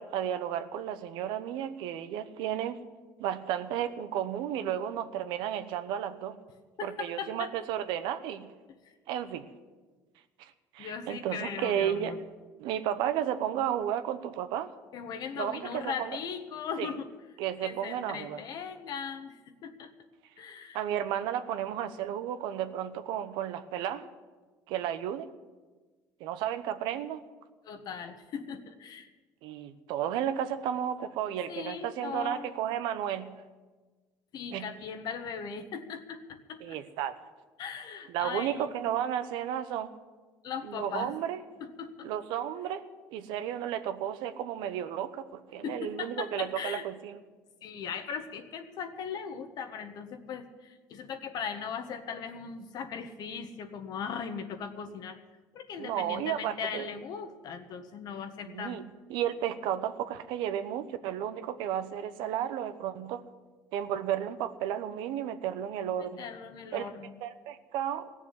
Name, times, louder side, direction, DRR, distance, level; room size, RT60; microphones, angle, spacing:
voice 1, 0.0-2.8 3.2-6.4 6.8-8.5 9.1-9.5 10.4-12.2 12.6-14.7 15.4-16.2 16.8-16.9 17.4-18.4 20.7-24.1 24.7-25.3 26.2-27.2 29.4-33.4 34.5-34.7 36.6-37.2 38.1-39.9 40.6-41.4 42.0-42.8 43.1-47.2 55.8-56.9 58.4-58.8 59.1-63.2 63.7-66.3 66.7-66.9 67.2-68.1, right 10 dB, 80° right, 10 dB, 1.0 m, -33 dB
voice 2, 6.8-7.5 10.8-12.2 14.9-17.1 17.6-19.9 20.4-20.8 27.6-29.1 31.5-32.5 34.3-36.8 37.6-38.7 40.4-41.1 41.6-42.1 45.6-46.8 47.6-55.2 55.5-58.8 66.0-67.1, left 6 dB, 60° left, 8 dB, 1.4 m, -39 dB
16.5 x 7.1 x 9.8 m, 1.3 s
supercardioid pair, 90°, 8 cm